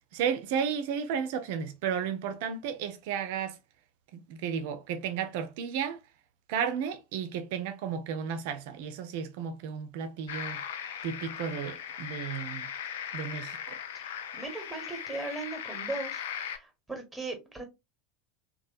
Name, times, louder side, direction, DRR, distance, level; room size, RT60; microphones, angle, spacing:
voice 1, 0.1-3.6 4.1-6.0 6.5-10.6 11.0-12.7 13.1-13.8, right 7 dB, 60° right, 0.5 m, -33 dB
sound 1, 10.3-16.6, left 8 dB, 65° left, 0.4 m, -38 dB
voice 2, 13.9-17.6, right 3 dB, 5° right, 1.1 m, -39 dB
3.1 x 2.2 x 2.6 m
figure-of-eight pair, 80°, 0 cm